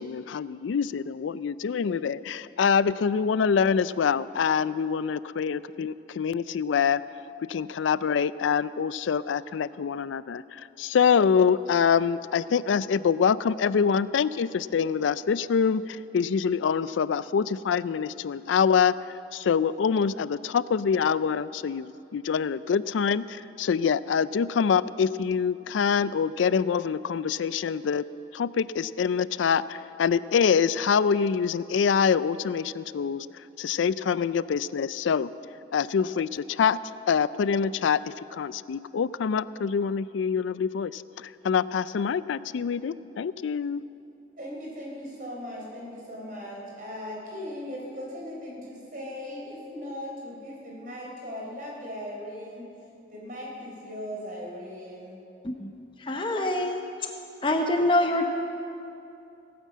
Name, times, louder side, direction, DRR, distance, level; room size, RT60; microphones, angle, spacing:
voice 1, 0.0-7.0 7.5-18.9 19.3-28.0 28.3-33.3 33.6-35.3 35.7-36.8 37.1-43.8, left 6 dB, 90° left, 17 dB, 0.4 m, -25 dB
voice 2, 44.4-52.7 53.1-55.2, left 1 dB, 45° right, -3 dB, 3.9 m, -38 dB
voice 3, 56.0-57.1 57.4-58.2, left 1 dB, 25° left, 3 dB, 0.9 m, -25 dB
17.5 x 9.6 x 7.4 m, 2.7 s
head